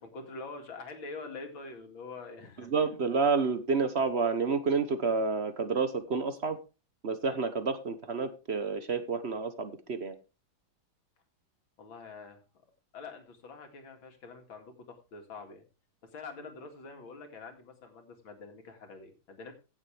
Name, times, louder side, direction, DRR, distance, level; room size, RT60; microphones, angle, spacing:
voice 1, 0.0-2.7 11.8-12.4 12.9-15.6 16.0-19.5, left 3 dB, 80° left, 5 dB, 2.9 m, -45 dB
voice 2, 2.6-6.6 7.0-10.1, right 4 dB, 40° right, 10 dB, 1.0 m, -29 dB
16.0 x 7.4 x 3.4 m, 0.30 s
omnidirectional pair, 2.2 m